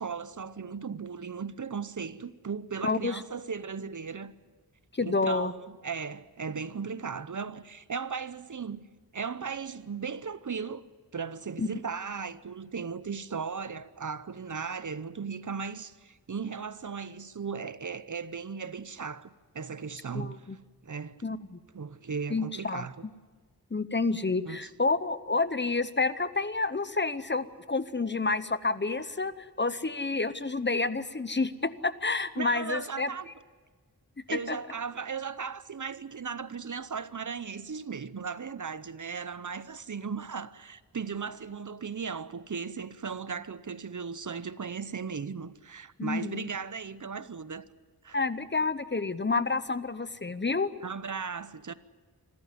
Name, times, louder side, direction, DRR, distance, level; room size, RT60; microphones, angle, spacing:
voice 1, 0.0-4.3 5.0-8.8 9.1-10.8 11.1-20.5 20.8-21.2 21.7-23.1 24.5-24.7 32.4-33.3 34.3-47.6 48.0-48.2 50.8-51.7, right 5 dB, 50° right, 0.8 m, -37 dB
voice 2, 2.8-3.2 4.9-5.5 11.6-11.7 20.1-20.6 21.2-21.6 22.3-22.9 23.7-33.1 34.5-34.6 46.0-46.5 48.1-50.7, left 3 dB, 30° left, 0.8 m, -29 dB
26.0 x 14.0 x 9.7 m
wide cardioid pair, 85°, 38 cm